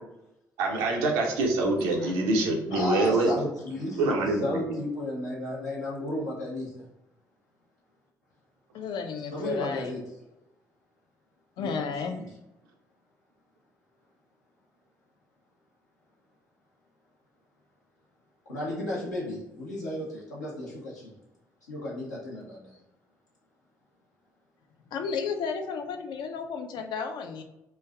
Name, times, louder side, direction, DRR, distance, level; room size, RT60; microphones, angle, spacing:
voice 1, 0.6-3.3 4.0-4.6, right 2 dB, 70° right, 0 dB, 0.5 m, -25 dB
voice 2, 2.7-4.0 4.3-6.8 9.3-10.0 11.6-11.7 12.1-12.3 18.5-21.1 21.7-22.8, left 1 dB, 85° left, -7 dB, 0.7 m, -33 dB
voice 3, 8.7-9.9 11.6-12.2 24.9-27.4, left 5 dB, 55° left, 6 dB, 0.4 m, -33 dB
3.2 x 2.3 x 2.2 m, 0.89 s
figure-of-eight pair, 40°, 9 cm